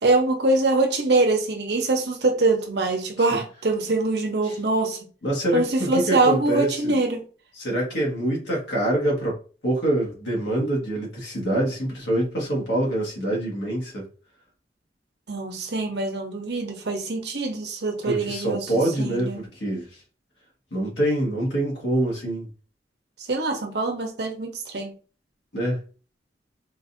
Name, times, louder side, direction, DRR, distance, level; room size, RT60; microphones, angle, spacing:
voice 1, 0.0-5.0 5.5-7.2 15.3-18.7 19.0-19.4 23.3-24.9, right 2 dB, 70° right, 0.8 m, -23 dB
voice 2, 5.2-6.9 7.5-14.0 18.0-19.9 20.7-22.5 25.5-25.8, right 1 dB, 85° left, 1.6 m, -25 dB
3.8 x 2.6 x 2.6 m
head